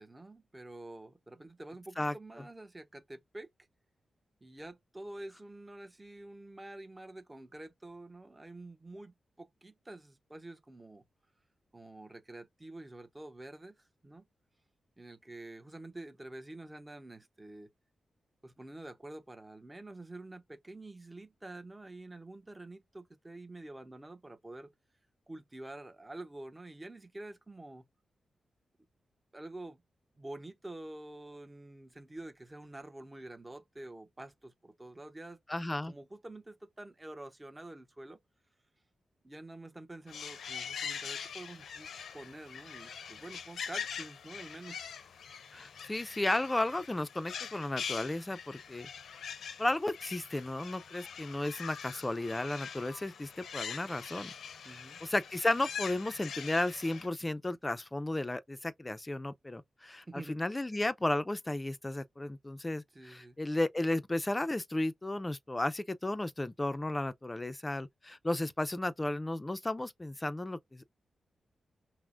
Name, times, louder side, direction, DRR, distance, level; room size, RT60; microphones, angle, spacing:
voice 1, 0.0-3.5 4.4-11.0 11.7-14.3 15.0-17.7 18.4-24.7 25.3-27.9 29.3-29.8 30.2-35.4 35.8-38.2 39.2-44.8 54.6-55.0 60.1-60.4 62.9-63.4, right 2 dB, 20° right, 0.8 m, -48 dB
voice 2, 35.5-35.9 45.5-48.9 49.6-54.3 54.7-54.8 55.0-70.8, left 2 dB, 20° left, 0.5 m, -34 dB
sound 1, 40.1-57.1, left 7 dB, 85° left, 0.7 m, -43 dB
5.8 x 2.1 x 2.5 m
cardioid pair, 70°, 0 cm